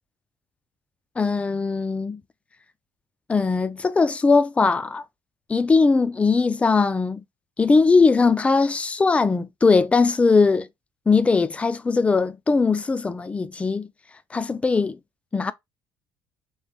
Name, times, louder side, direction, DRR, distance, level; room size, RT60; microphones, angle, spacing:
voice 1, 1.2-2.2 3.3-5.0 5.5-7.2 7.6-10.7 11.1-13.9 14.3-15.0 15.3-15.5, left 4 dB, 15° left, 0.3 m, -20 dB
3.0 x 2.9 x 3.3 m
cardioid pair, 105°, 8 cm